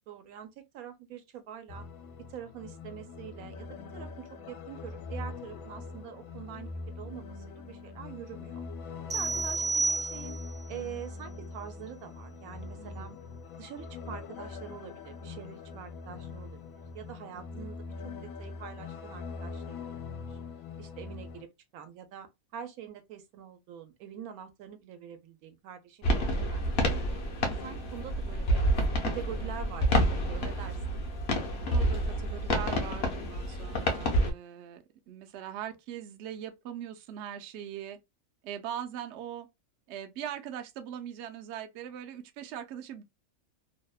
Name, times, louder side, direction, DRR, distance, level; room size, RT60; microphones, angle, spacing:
voice 1, 0.1-1.8 2.3-3.7 3.9-8.6 9.1-10.4 10.7-13.1 13.6-16.6 16.9-17.8 18.2-19.9 20.3-20.4 20.8-27.3 27.6-28.6 29.0-31.0, right 9 dB, 85° right, 1.1 m, -45 dB
sound 1, 1.7-21.4, left 4 dB, 80° left, 1.0 m, -42 dB
sound 2, 9.1-10.6, right 3 dB, 15° right, 0.4 m, -30 dB
voice 2, 12.8-13.2 17.3-17.6 26.1-26.5 31.7-38.0 38.4-39.5 39.9-43.0, right 10 dB, 65° right, 0.7 m, -41 dB
sound 3, 26.0-34.3, equal, 55° left, 0.8 m, -28 dB
2.7 x 2.1 x 2.2 m
omnidirectional pair, 1.5 m